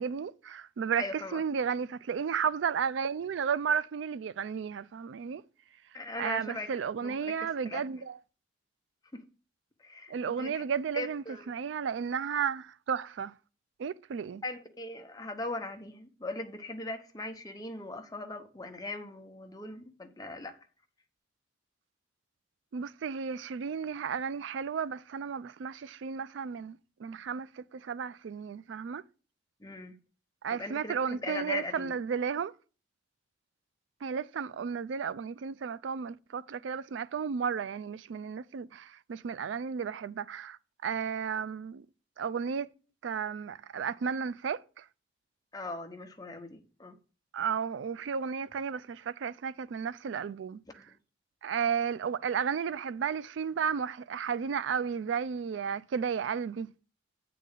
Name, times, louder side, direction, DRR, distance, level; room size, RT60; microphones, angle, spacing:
voice 1, 0.0-5.4 6.2-8.2 10.1-13.3 13.8-14.4 22.7-29.0 30.4-32.5 34.0-41.9 42.2-42.7 43.0-44.8 47.3-50.6 51.4-56.7, right 6 dB, 90° right, 0.4 m, -33 dB
voice 2, 1.0-1.4 5.9-6.7 7.0-7.3 7.6-8.0 9.1-9.2 9.8-10.6 10.9-11.5 14.4-20.6 29.6-30.0 30.5-31.9 45.5-47.0, left 2 dB, 20° left, 0.9 m, -39 dB
9.1 x 3.9 x 6.6 m
head